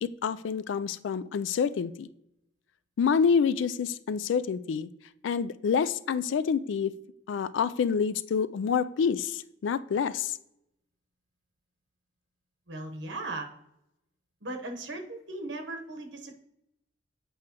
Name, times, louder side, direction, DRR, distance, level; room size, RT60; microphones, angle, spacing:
voice 1, 0.0-2.1 3.0-4.9 5.2-6.9 7.3-10.4, left 6 dB, 90° left, 15 dB, 0.3 m, -27 dB
voice 2, 12.7-13.5 14.4-16.4, right 2 dB, 85° right, 4 dB, 1.0 m, -37 dB
7.9 x 4.8 x 2.9 m, 0.82 s
head